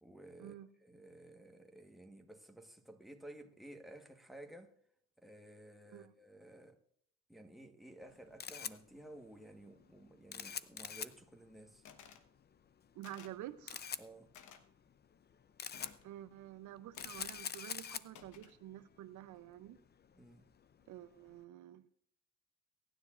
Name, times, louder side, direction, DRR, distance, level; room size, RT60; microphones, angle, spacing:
voice 1, 0.0-0.5 0.8-4.7 5.2-6.8 7.3-11.8 14.0-14.3 20.1-20.4, right 1 dB, ahead, 1.3 m, -54 dB
Camera, 8.0-21.4, left 7 dB, 35° left, 0.5 m, -47 dB
sound 1, 11.9-12.3 13.0-13.4 14.3-14.6 15.7-16.1 16.9-17.5 18.1-18.6, left 7 dB, 85° left, 1.1 m, -56 dB
voice 2, 13.0-14.0 16.0-19.8 20.9-21.9, right 13 dB, 75° right, 0.6 m, -49 dB
22.5 x 9.9 x 2.5 m
cardioid pair, 90°, 30 cm